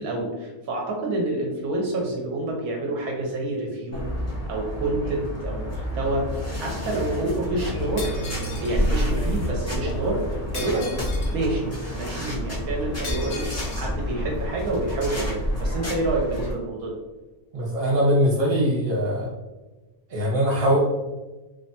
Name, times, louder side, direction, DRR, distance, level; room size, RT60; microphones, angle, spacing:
voice 1, 0.0-4.1 4.5-6.3 6.6-8.2 8.6-10.9 11.3-13.4 13.7-17.0, right 2 dB, 75° right, -1 dB, 1.0 m, -28 dB
sound 1, 3.9-16.5, equal, 20° left, 0.4 m, -29 dB
Shatter, 8.0-8.8 10.5-11.4 13.0-13.9, left 3 dB, 60° left, 1.1 m, -37 dB
voice 2, 17.5-19.3 20.1-20.8, equal, 45° right, -3 dB, 1.0 m, -21 dB
3.1 x 2.1 x 2.7 m, 1.2 s
omnidirectional pair, 1.6 m